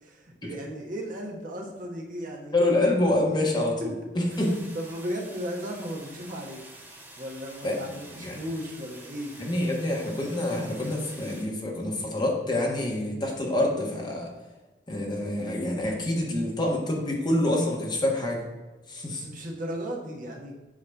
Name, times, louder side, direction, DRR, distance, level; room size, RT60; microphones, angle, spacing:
voice 1, 0.0-2.5 3.8-3.9 4.7-6.6 7.2-9.3 19.1-20.5, equal, 45° right, 0 dB, 1.3 m, -35 dB
voice 2, 2.5-4.6 7.6-7.8 8.1-8.4 9.4-14.3 14.9-18.4 18.9-19.2, left 1 dB, 25° left, -2 dB, 1.5 m, -27 dB
sound 1, 4.3-11.4, right 1 dB, 10° right, 1.8 m, -48 dB
8.4 x 3.2 x 6.4 m, 1.1 s
head